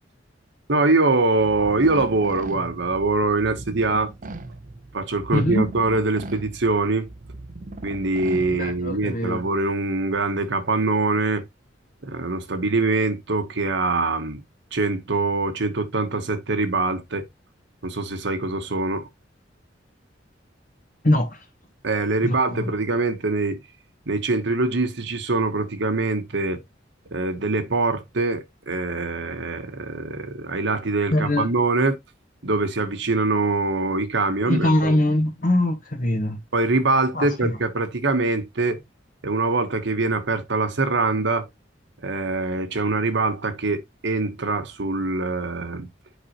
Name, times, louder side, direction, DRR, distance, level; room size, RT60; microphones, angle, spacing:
voice 1, 0.7-4.1 4.9-7.1 7.8-11.4 12.0-14.4 14.7-17.3 17.8-19.1 21.8-23.6 24.1-26.6 27.1-32.0 32.4-34.9 36.5-38.8 39.2-41.5 42.0-45.9, right 3 dB, 65° right, 1.2 m, -23 dB
sound 1, 1.4-9.1, right 2 dB, 45° right, 0.7 m, -39 dB
voice 2, 5.3-5.6 8.5-9.4 21.0-21.4 22.2-22.7 31.1-31.5 34.5-36.4 37.1-37.5, left 1 dB, 50° left, 1.7 m, -22 dB
8.2 x 5.3 x 2.9 m
head